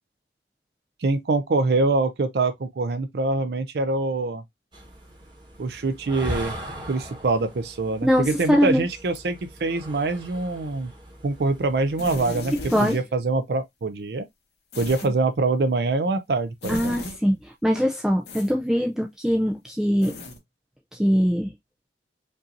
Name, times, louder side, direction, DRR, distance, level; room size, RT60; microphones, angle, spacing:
voice 1, 1.0-4.4 5.6-6.5 6.9-10.9 11.2-12.5 12.8-14.3 14.8-16.9, right 3 dB, 65° right, 0.5 m, -24 dB
sound 1, 4.7-12.9, equal, 25° right, 1.2 m, -40 dB
voice 2, 8.0-8.8 12.7-13.0 15.0-15.1 16.7-20.1 20.9-21.5, equal, 5° right, 0.4 m, -22 dB
sound 2, 12.0-13.0 14.7-15.1 16.6-17.2 18.2-18.5 20.0-20.4, left 2 dB, 70° left, 1.5 m, -35 dB
5.3 x 2.7 x 2.5 m
head